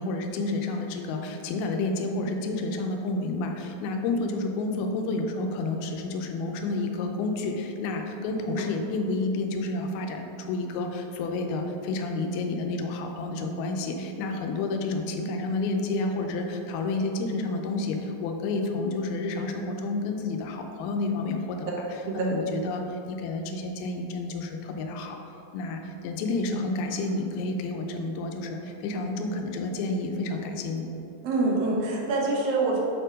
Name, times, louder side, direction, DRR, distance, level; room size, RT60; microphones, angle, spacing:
voice 1, 0.0-21.7 22.1-25.2 25.5-30.9, left 2 dB, 90° left, 3 dB, 2.5 m, -30 dB
voice 2, 31.2-32.8, right 3 dB, 80° right, -3 dB, 1.4 m, -25 dB
6.9 x 4.5 x 5.0 m, 3.0 s
omnidirectional pair, 4.3 m